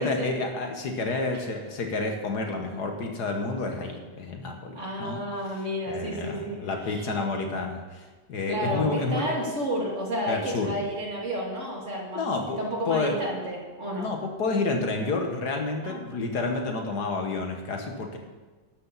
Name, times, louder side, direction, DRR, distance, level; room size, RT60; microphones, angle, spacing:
voice 1, 0.0-5.2 5.9-9.4 10.3-10.8 12.1-12.6 12.9-13.2 14.0-18.2, left 3 dB, 60° left, 3 dB, 1.7 m, -29 dB
voice 2, 4.7-7.1 8.5-12.3 12.6-14.1 15.8-16.0, equal, 40° right, -2 dB, 2.6 m, -31 dB
12.5 x 12.0 x 4.1 m, 1.3 s
omnidirectional pair, 2.0 m